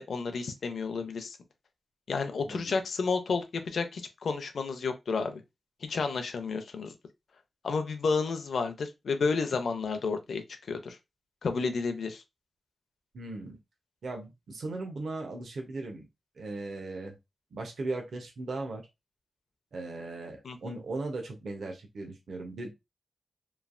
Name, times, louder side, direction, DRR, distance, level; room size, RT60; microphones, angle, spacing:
voice 1, 0.0-1.4 2.1-5.4 5.8-6.9 7.6-10.4 10.7-11.0 11.4-12.2 20.4-20.7, left 4 dB, 65° left, 0.5 m, -31 dB
voice 2, 2.4-2.8 13.1-13.6 14.0-16.1 16.4-17.2 17.5-18.8 19.7-22.7, right 2 dB, 60° right, 0.7 m, -37 dB
3.1 x 2.3 x 2.4 m
wide cardioid pair, 155°, 0 cm